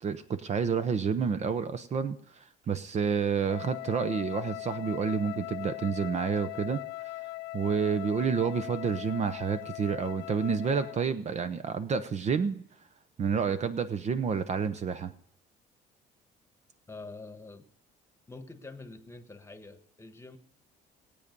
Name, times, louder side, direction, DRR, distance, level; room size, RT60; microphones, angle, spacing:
voice 1, 0.0-7.1 7.5-12.6 13.2-15.1, right 6 dB, 40° right, 12 dB, 0.8 m, -29 dB
Wind instrument woodwind instrument, 3.5-11.1, left 19 dB, 90° left, 0.4 m, -40 dB
voice 2, 16.9-17.6 18.3-20.4, left 3 dB, 15° left, 8 dB, 1.3 m, -46 dB
19.0 x 8.7 x 5.3 m, 0.72 s
cardioid pair, 110°, 17 cm